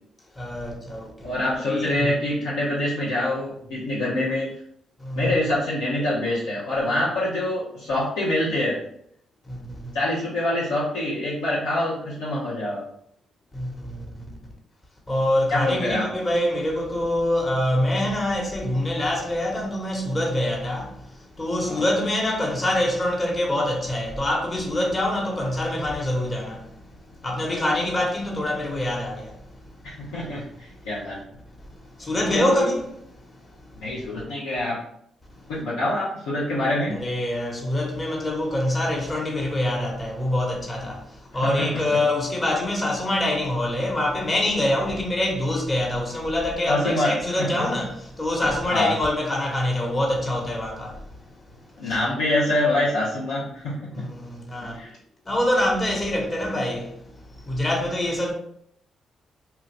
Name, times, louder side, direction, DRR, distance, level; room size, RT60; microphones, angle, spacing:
voice 1, 0.4-1.3 1.6-2.1 5.0-5.4 9.4-10.0 13.5-14.2 15.1-29.7 30.6-30.7 31.7-33.5 33.8-33.9 35.3-35.5 36.9-51.0 51.8-52.0 53.9-54.8 55.3-58.3, left 1 dB, 30° left, 1.0 m, -25 dB
voice 2, 1.2-4.5 5.1-8.8 9.9-12.8 15.5-16.1 21.7-21.9 29.8-31.2 32.3-32.7 33.8-34.8 35.5-37.0 41.4-42.0 46.7-47.6 48.7-48.9 51.8-54.1 54.6-54.9, left 1 dB, 85° left, 0.6 m, -25 dB
2.9 x 2.3 x 3.2 m
hypercardioid pair, 45°, 0 cm